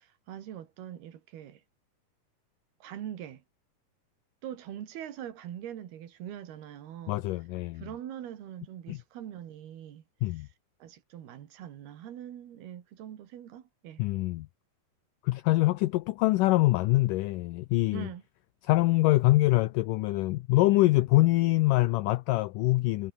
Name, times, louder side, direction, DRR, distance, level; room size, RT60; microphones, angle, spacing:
voice 1, 0.0-1.6 2.8-3.4 4.4-7.2 7.7-10.5 10.8-14.0 17.9-18.2, right 10 dB, 90° right, 4.1 m, -43 dB
voice 2, 7.1-7.9 8.9-9.0 10.2-10.5 14.0-14.5 15.2-18.1 18.7-23.1, left 19 dB, 80° left, 1.9 m, -24 dB
omnidirectional pair, 4.4 m